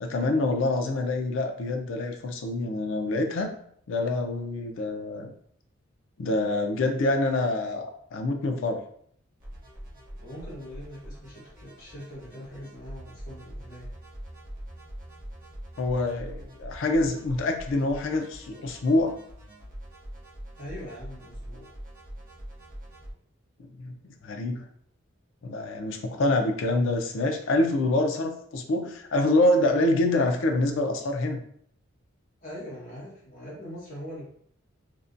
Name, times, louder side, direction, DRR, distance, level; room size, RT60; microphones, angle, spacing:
voice 1, 0.0-3.5 3.9-5.3 6.2-8.8 15.8-19.2 23.6-24.0 24.2-24.6 25.4-31.4, left 2 dB, 70° left, 4 dB, 0.4 m, -26 dB
sound 1, 9.4-23.1, equal, 45° right, 0.6 m, -43 dB
voice 2, 10.2-13.9 20.6-21.7 32.4-34.2, equal, 45° left, -6 dB, 1.1 m, -42 dB
2.6 x 2.1 x 2.5 m, 0.63 s
head